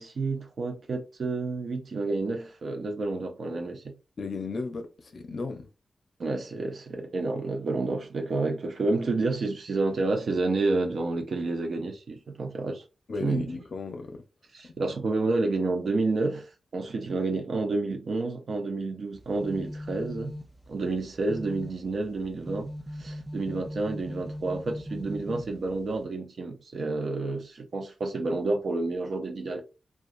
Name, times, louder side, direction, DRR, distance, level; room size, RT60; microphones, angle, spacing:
voice 1, 0.0-4.0 6.2-12.8 13.2-13.5 14.5-20.4 20.7-22.7 23.0-29.6, right 3 dB, 70° right, 0.5 m, -29 dB
voice 2, 4.2-5.7 13.1-14.2 14.6-14.7, left 4 dB, 65° left, 0.4 m, -35 dB
sound 1, 19.1-26.0, left 1 dB, 10° right, 0.4 m, -40 dB
2.4 x 2.2 x 2.5 m
cardioid pair, 70°, 0 cm